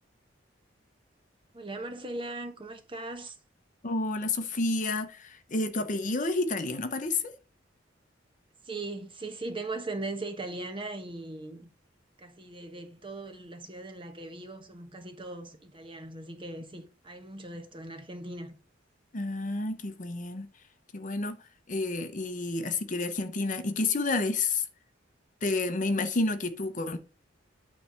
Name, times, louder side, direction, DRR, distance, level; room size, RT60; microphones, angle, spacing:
voice 1, 1.5-3.4 8.6-11.7 12.2-18.6, right 2 dB, 25° right, 1.0 m, -39 dB
voice 2, 3.8-7.3 19.1-20.5 20.9-21.4 21.7-24.6 25.4-27.0, left 3 dB, 40° left, 0.8 m, -30 dB
9.2 x 3.3 x 6.2 m
head